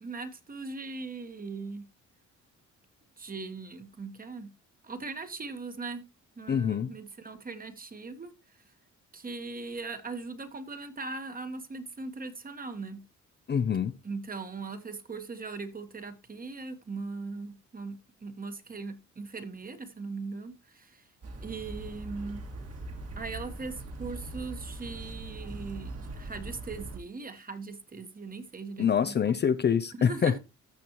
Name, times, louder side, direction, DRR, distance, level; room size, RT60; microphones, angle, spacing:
voice 1, 0.0-1.9 3.2-4.5 4.8-6.1 6.4-8.3 9.1-13.1 14.0-21.1 21.4-22.4 23.2-29.2 29.9-30.4, right 4 dB, 30° right, 1.4 m, -39 dB
voice 2, 6.5-6.9 13.5-13.9 28.8-30.4, left 7 dB, 35° left, 0.6 m, -25 dB
sound 1, 21.2-27.0, right 2 dB, 55° right, 2.3 m, -41 dB
14.0 x 6.0 x 3.0 m
cardioid pair, 90°, 30 cm